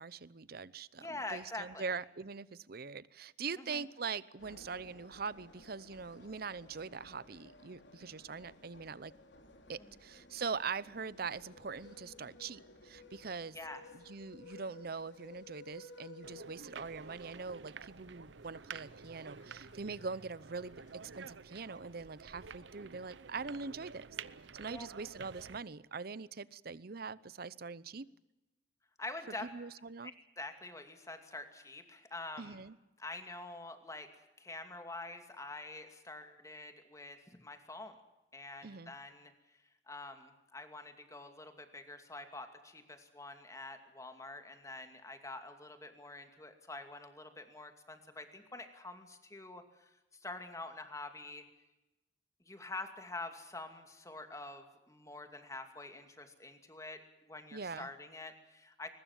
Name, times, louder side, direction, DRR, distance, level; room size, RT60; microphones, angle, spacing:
voice 1, 0.0-9.1 9.7-13.6 13.9-20.7 21.0-24.1 24.6-28.1 29.5-30.1 32.4-32.7 38.6-38.9 57.5-57.9, right 5 dB, 55° right, 19 dB, 0.7 m, -42 dB
voice 2, 1.0-2.0 3.6-3.8 13.5-13.8 24.7-24.9 29.0-29.5 30.0-32.6 33.0-34.1 34.4-37.9 38.3-39.3 39.9-49.9 50.2-51.5 52.5-58.9, left 2 dB, 20° left, 7 dB, 2.5 m, -46 dB
sound 1, 4.4-23.9, left 2 dB, 80° left, 3.0 m, -58 dB
sound 2, 16.2-25.6, right 5 dB, 90° right, 0.8 m, -50 dB
22.5 x 20.0 x 7.4 m, 0.99 s
head